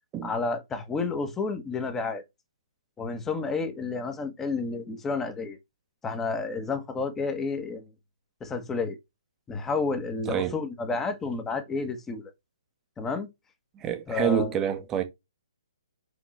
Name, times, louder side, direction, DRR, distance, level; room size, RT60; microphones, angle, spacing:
voice 1, 0.2-2.2 3.0-5.6 6.0-7.9 8.4-9.0 9.5-12.3 13.0-13.3 14.1-14.6, left 4 dB, 10° left, 1.2 m, -30 dB
voice 2, 13.8-15.0, right 10 dB, 15° right, 1.0 m, -27 dB
5.8 x 5.0 x 3.3 m
figure-of-eight pair, 130°, 2 cm